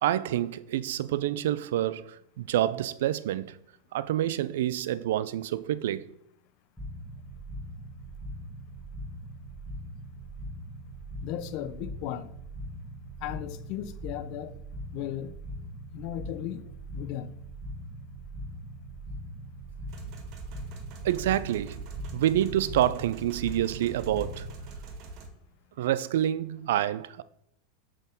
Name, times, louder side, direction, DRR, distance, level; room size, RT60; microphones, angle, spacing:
voice 1, 0.0-3.6 3.9-6.1 21.0-21.8 22.1-24.5 25.8-27.2, right 12 dB, 75° right, 0.4 m, -27 dB
sound 1, 6.8-24.8, equal, 5° right, 1.5 m, -41 dB
voice 2, 11.2-12.3 13.2-14.5 14.9-15.3 15.9-16.6 16.9-17.3, left 12 dB, 55° left, 0.5 m, -36 dB
sound 2, 19.9-25.3, right 4 dB, 50° right, 1.5 m, -43 dB
6.3 x 3.8 x 5.3 m
hypercardioid pair, 115°, 0 cm